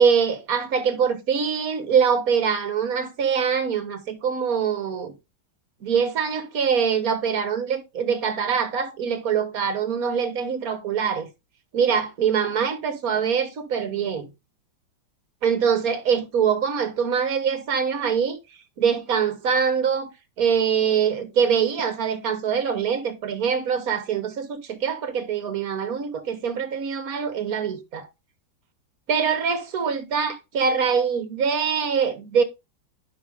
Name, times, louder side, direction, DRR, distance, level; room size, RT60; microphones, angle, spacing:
voice 1, 0.0-5.1 5.8-11.3 11.7-14.3 15.4-18.4 18.8-20.1 20.4-28.1 29.1-32.4, right 7 dB, 50° right, 1.5 m, -23 dB
11.0 x 6.1 x 3.5 m
omnidirectional pair, 2.3 m